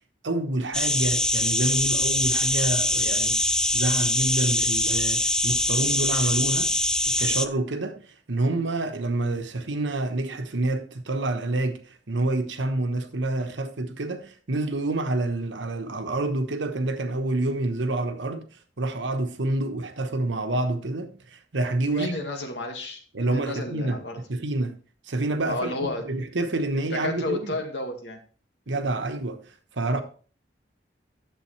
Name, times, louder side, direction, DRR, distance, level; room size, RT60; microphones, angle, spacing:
voice 1, 0.2-3.5 3.7-6.7 7.1-8.0 8.3-18.4 18.8-22.1 23.1-24.0 24.3-24.8 25.1-27.6 28.7-29.4 29.8-30.0, right 2 dB, 90° right, 1.1 m, -28 dB
sound 1, 0.7-7.5, left 1 dB, 5° left, 0.3 m, -23 dB
voice 2, 21.9-24.2 25.5-26.0 26.9-28.2, left 2 dB, 70° left, 1.9 m, -32 dB
10.5 x 7.4 x 3.2 m
head